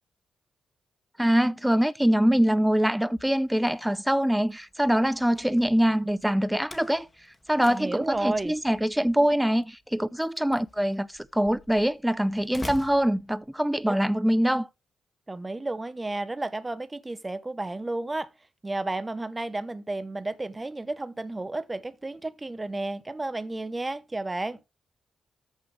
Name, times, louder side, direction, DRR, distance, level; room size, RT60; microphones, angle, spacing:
voice 1, 1.2-7.1 7.5-14.7, equal, 5° right, 0.6 m, -24 dB
Slam, 3.0-13.9, left 1 dB, 25° left, 2.1 m, -48 dB
voice 2, 7.7-8.5 13.8-13.9 15.3-18.3 18.6-24.6, right 2 dB, 25° right, 0.9 m, -32 dB
14.0 x 5.6 x 3.3 m
supercardioid pair, 50°, 0 cm